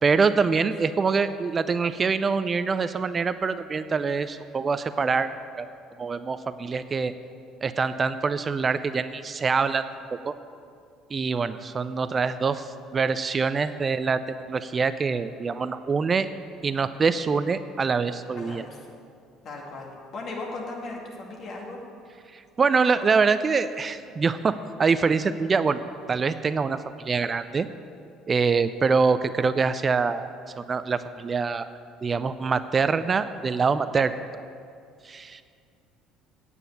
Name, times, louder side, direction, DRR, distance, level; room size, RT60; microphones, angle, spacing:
voice 1, 0.0-5.3 5.6-5.7 6.0-7.1 7.6-9.8 10.2-10.3 11.1-16.3 16.6-18.6 22.3-25.8 26.1-27.7 28.3-30.3 30.6-31.7 32.0-34.2 35.0-35.4, right 5 dB, 30° right, 13 dB, 0.4 m, -25 dB
voice 2, 18.3-18.9 19.4-21.8, left 2 dB, 45° left, -1 dB, 2.2 m, -37 dB
9.0 x 8.3 x 7.0 m, 2.3 s
figure-of-eight pair, 55°, 0 cm